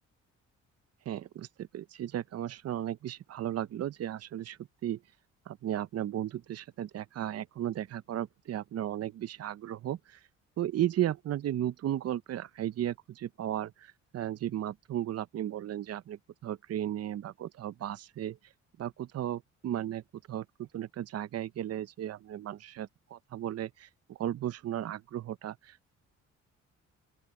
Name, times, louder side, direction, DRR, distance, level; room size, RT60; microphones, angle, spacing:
voice 1, 1.1-5.0 5.5-10.2 10.6-18.4 18.8-20.0 20.3-25.9, right 11 dB, 55° right, 0.7 m, -35 dB
open air
cardioid pair, 90°, 30 cm